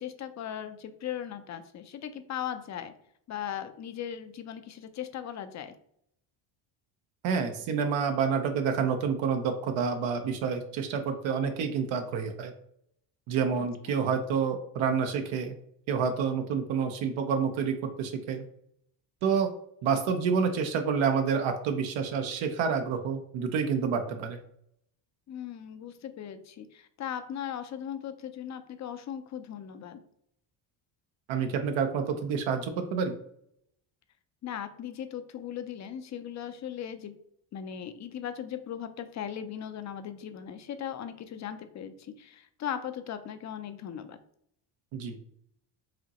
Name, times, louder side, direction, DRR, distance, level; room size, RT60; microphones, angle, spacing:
voice 1, 0.0-2.9 3.3-5.7 13.6-14.0 25.3-30.0 34.4-37.1 37.5-44.2, left 9 dB, 35° left, 10 dB, 0.5 m, -38 dB
voice 2, 7.2-12.5 13.3-15.5 15.9-18.4 19.2-19.5 19.8-24.4 31.3-33.2 44.9-45.2, right 6 dB, 70° right, 5 dB, 0.8 m, -28 dB
5.0 x 2.9 x 2.9 m, 0.71 s
cardioid pair, 95°, 49 cm